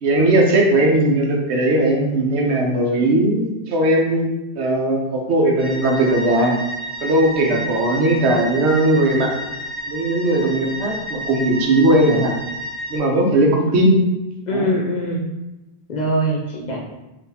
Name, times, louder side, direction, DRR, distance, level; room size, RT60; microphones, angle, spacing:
voice 1, 0.0-4.3 4.6-6.5 7.0-9.3 9.9-12.3 12.9-14.0 14.5-14.7, right 1 dB, 85° right, 1 dB, 1.0 m, -18 dB
sound 1, 5.6-13.0, right 1 dB, 45° right, 1.1 m, -31 dB
voice 2, 14.5-15.2 15.9-16.8, right 1 dB, 55° left, -1 dB, 0.5 m, -22 dB
2.7 x 2.6 x 3.8 m, 0.99 s
omnidirectional pair, 1.1 m